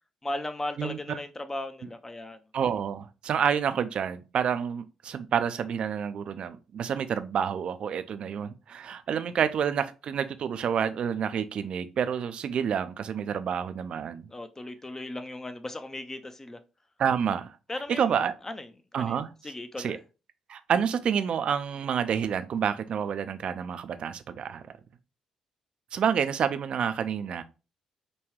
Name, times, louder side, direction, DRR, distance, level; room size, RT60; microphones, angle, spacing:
voice 1, 0.2-2.4 14.3-16.6 17.7-18.0 18.4-19.2 19.4-20.0, left 1 dB, 20° left, 0.5 m, -37 dB
voice 2, 0.8-1.2 2.5-14.3 17.0-17.6 17.9-18.3 18.9-19.3 19.8-20.0 20.5-24.6 25.9-27.4, right 7 dB, 55° right, 0.4 m, -28 dB
5.2 x 2.3 x 3.1 m
hypercardioid pair, 45°, 2 cm